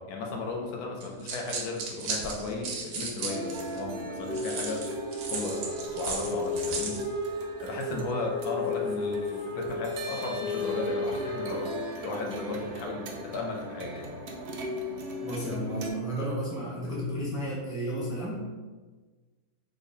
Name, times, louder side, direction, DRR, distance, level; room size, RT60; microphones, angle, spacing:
voice 1, 0.0-4.8 5.3-7.0 7.6-14.2, left 3 dB, 80° left, 1 dB, 1.1 m, -35 dB
sound 1, 1.0-3.8 4.3-7.0, right 4 dB, 90° right, 1.2 m, -35 dB
sound 2, 3.3-15.9, right 1 dB, 70° right, 0.6 m, -37 dB
Wind instrument woodwind instrument, 5.4-12.2, left 4 dB, 60° left, 0.5 m, -35 dB
voice 2, 15.2-18.5, equal, 5° right, -6 dB, 0.5 m, -33 dB
3.7 x 2.1 x 3.8 m, 1.3 s
omnidirectional pair, 1.6 m